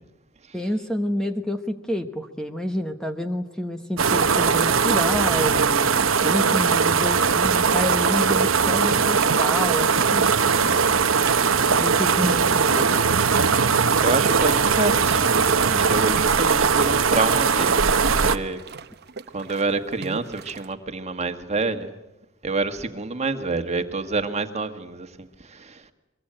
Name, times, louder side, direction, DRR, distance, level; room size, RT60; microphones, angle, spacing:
voice 1, 0.5-10.3 11.7-13.0, equal, 5° left, 1.2 m, -28 dB
sound 1, 4.0-18.4, right 5 dB, 85° right, 1.1 m, -20 dB
sound 2, 8.6-20.7, right 4 dB, 55° right, 0.9 m, -38 dB
voice 2, 10.2-10.7 14.0-17.9 18.2-18.6 19.3-21.9 22.4-25.8, right 3 dB, 35° right, 1.7 m, -27 dB
23.5 x 23.0 x 8.9 m
head